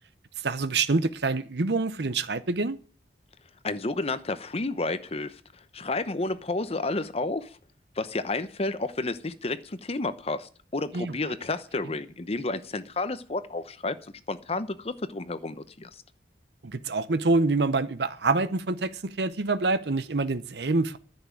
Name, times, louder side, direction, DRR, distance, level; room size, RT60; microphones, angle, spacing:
voice 1, 0.4-2.8 10.9-11.1 16.6-21.0, right 3 dB, 70° right, 0.8 m, -26 dB
voice 2, 3.6-5.4 5.7-7.6 8.0-14.0 14.3-16.0, left 2 dB, 35° left, 0.9 m, -31 dB
10.5 x 7.2 x 9.3 m
head